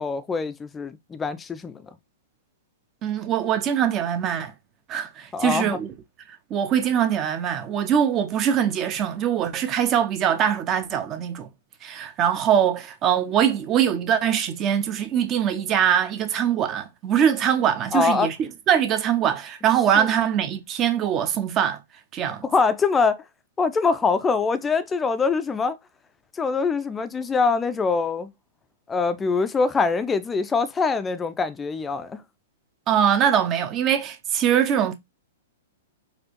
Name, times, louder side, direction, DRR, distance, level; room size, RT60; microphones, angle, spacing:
voice 1, 0.0-1.9 5.3-5.8 17.9-18.3 20.0-20.1 22.4-23.2 23.6-25.8 26.4-28.3 28.9-32.2, left 4 dB, 15° left, 0.4 m, -23 dB
voice 2, 3.0-4.5 4.9-5.9 6.5-11.5 11.8-21.8 22.1-22.4 32.9-34.9, right 9 dB, 30° right, 0.6 m, -22 dB
4.2 x 2.4 x 2.9 m
figure-of-eight pair, 110°, 0 cm